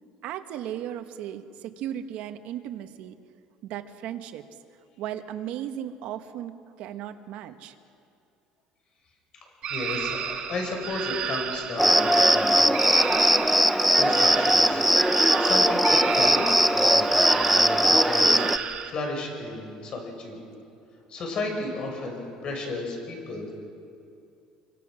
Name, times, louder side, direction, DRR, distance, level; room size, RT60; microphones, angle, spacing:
voice 1, 0.2-3.1 3.6-4.4 5.0-7.7, right 11 dB, 65° right, 7 dB, 1.4 m, -36 dB
sound 1, 9.6-18.9, right 8 dB, 45° right, 1.8 m, -32 dB
voice 2, 9.7-12.6 14.0-14.9 15.2-20.4 21.1-23.5, left 2 dB, 40° left, 2 dB, 6.0 m, -34 dB
Cricket, 11.8-18.6, equal, ahead, 0.6 m, -20 dB
24.5 x 24.5 x 6.4 m, 2.5 s
cardioid pair, 135°, 2 cm